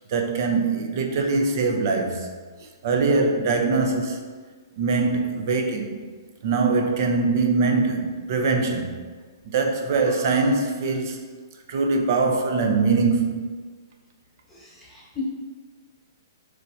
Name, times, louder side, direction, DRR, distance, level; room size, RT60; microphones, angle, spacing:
voice 1, 0.1-2.3 2.6-4.2 4.8-6.0 6.4-9.0 9.5-11.2 11.7-13.5, right 4 dB, 55° right, 0.5 m, -22 dB
voice 2, 14.5-15.2, left 10 dB, 5° left, 1.2 m, -37 dB
4.2 x 3.2 x 2.7 m
hypercardioid pair, 135°, 2 cm